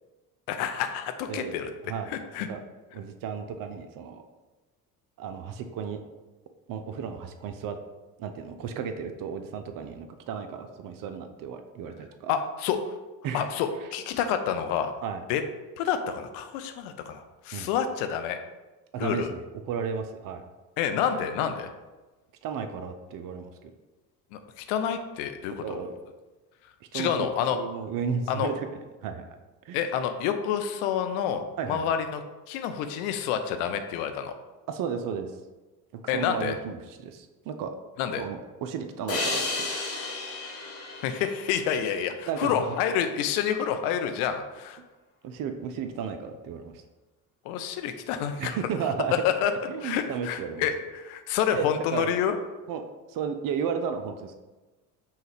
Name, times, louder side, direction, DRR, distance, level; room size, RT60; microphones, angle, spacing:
voice 1, 0.5-1.7 2.1-2.5 12.3-13.0 13.3-14.9 15.3-15.4 15.8-18.4 19.0-19.3 20.8-21.7 24.3-25.8 26.9-27.6 28.3-28.5 29.7-32.2 32.5-34.3 36.1-36.5 38.0-38.2 41.0-44.8 47.4-48.6 49.2-49.5 49.8-52.4, left 8 dB, 65° left, 8 dB, 0.6 m, -28 dB
voice 2, 1.3-2.1 2.5-2.6 2.9-4.2 5.2-6.0 6.7-7.8 8.2-12.3 13.2-13.5 15.0-15.2 17.5-17.7 18.9-20.4 22.4-23.7 25.6-26.0 26.9-27.1 27.5-29.4 29.7-29.8 31.6-31.9 34.7-35.3 35.9-37.7 38.2-39.7 42.3-42.6 45.2-46.8 48.4-49.1 49.7-50.6 51.5-52.1 52.7-54.3, right 6 dB, 45° right, 7 dB, 0.5 m, -34 dB
sound 1, 39.1-42.4, left 3 dB, 30° left, 1.0 m, -33 dB
5.5 x 2.3 x 3.3 m, 1.2 s
hypercardioid pair, 55°, 48 cm